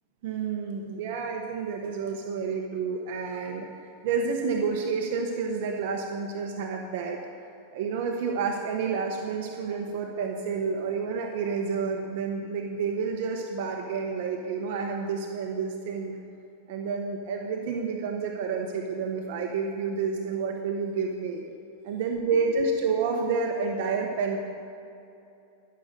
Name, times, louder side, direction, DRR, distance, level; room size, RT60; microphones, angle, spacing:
voice 1, 0.2-3.7 4.0-7.2 7.7-16.2 16.7-21.4 21.8-24.4, right 5 dB, 60° right, 2 dB, 1.1 m, -29 dB
13.5 x 6.6 x 6.8 m, 2.8 s
supercardioid pair, 140°, 0 cm